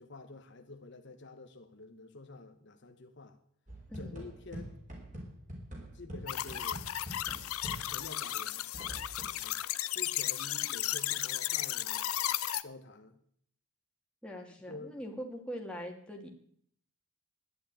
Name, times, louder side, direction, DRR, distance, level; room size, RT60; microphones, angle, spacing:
voice 1, 0.0-3.4 4.0-4.7 5.9-6.8 7.8-8.7 9.4-9.6 9.9-12.2 12.6-13.2 14.7-14.9, left 3 dB, 50° left, 6 dB, 1.2 m, -48 dB
sound 1, 3.7-8.2 8.7-9.4, equal, 35° right, 4.5 m, -45 dB
voice 2, 3.9-4.2 14.2-16.3, equal, 5° left, 1 dB, 2.2 m, -42 dB
sound 2, 6.3-12.6, left 13 dB, 80° left, 0.6 m, -34 dB
12.5 x 11.0 x 9.0 m, 0.64 s
head